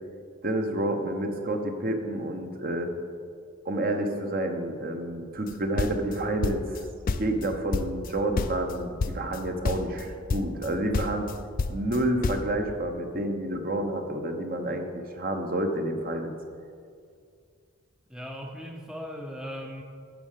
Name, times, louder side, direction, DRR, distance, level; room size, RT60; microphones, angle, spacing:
voice 1, 0.4-2.9 3.6-6.8 7.2-11.3 11.7-16.3, right 1 dB, 45° right, 5 dB, 0.9 m, -29 dB
sound 1, 5.5-6.8 7.1-8.1 8.4-8.7 9.0-9.4 9.6-10.0 10.3-10.7 10.9-12.5, left 3 dB, 40° left, 0.4 m, -29 dB
voice 2, 18.1-19.8, equal, 5° right, 1 dB, 0.6 m, -38 dB
9.2 x 6.5 x 6.6 m, 2.2 s
head